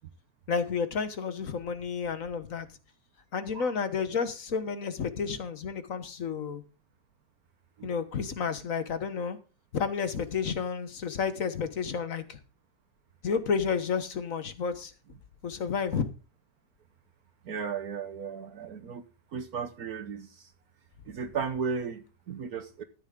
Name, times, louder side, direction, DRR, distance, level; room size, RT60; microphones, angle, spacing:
voice 1, 0.5-2.7 3.3-6.6 7.8-9.4 9.7-12.4 13.2-14.9 15.4-16.0, left 6 dB, 50° left, 1.6 m, -31 dB
voice 2, 17.5-19.0 19.3-20.3 21.1-22.8, right 5 dB, 60° right, 1.4 m, -35 dB
13.5 x 9.4 x 3.8 m
omnidirectional pair, 1.8 m